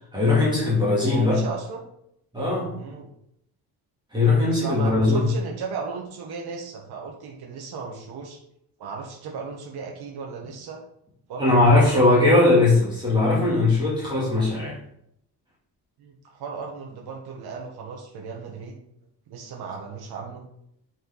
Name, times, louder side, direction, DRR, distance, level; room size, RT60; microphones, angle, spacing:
voice 1, 0.1-1.4 2.3-2.7 4.1-5.3 11.4-14.8, left 2 dB, 10° right, -7 dB, 2.9 m, -19 dB
voice 2, 1.1-1.8 2.7-3.1 4.5-8.4 8.8-10.8 11.3-12.1 16.0-18.8 19.3-20.5, right 5 dB, 80° right, 0 dB, 1.5 m, -35 dB
8.5 x 5.0 x 4.0 m, 0.74 s
cardioid pair, 155°, 37 cm